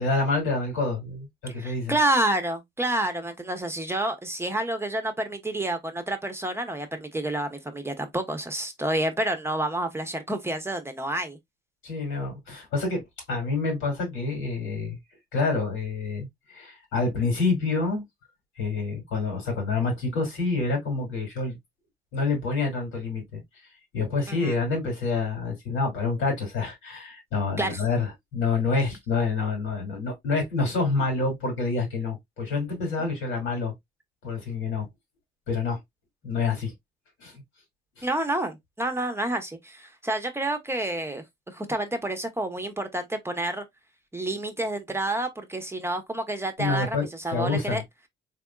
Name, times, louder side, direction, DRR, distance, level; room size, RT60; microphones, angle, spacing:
voice 1, 0.0-2.0 11.8-13.0 13.3-15.0 15.3-18.0 18.6-21.6 22.1-23.4 23.9-33.7 34.2-34.9 35.5-35.8 36.2-36.7 37.2-37.4 38.0-38.1 46.6-47.8, left 3 dB, 90° left, 2.4 m, -27 dB
voice 2, 1.5-11.4 24.3-24.5 27.6-27.8 38.0-43.6 44.1-47.8, right 1 dB, 10° right, 0.8 m, -29 dB
3.6 x 3.4 x 2.3 m
cardioid pair, 90°, 20 cm